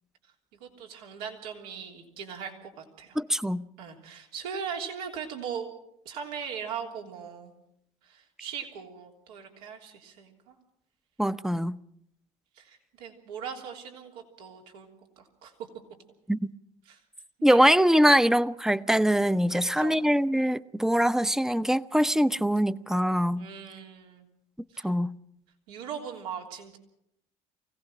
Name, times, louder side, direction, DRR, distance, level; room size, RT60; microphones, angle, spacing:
voice 1, 0.6-3.2 3.8-5.7 6.1-7.5 8.0-10.6 12.6-14.9 15.2-15.5 16.9-17.0 17.4-17.6 19.5-20.0 23.4-24.3 24.7-24.9 25.7-26.8, right 7 dB, 85° right, 3.3 m, -39 dB
voice 2, 3.2-3.6 11.2-11.8 16.3-16.5 17.4-23.5 24.8-25.1, equal, ahead, 0.8 m, -23 dB
24.5 x 17.5 x 6.2 m
hypercardioid pair, 60°, 19 cm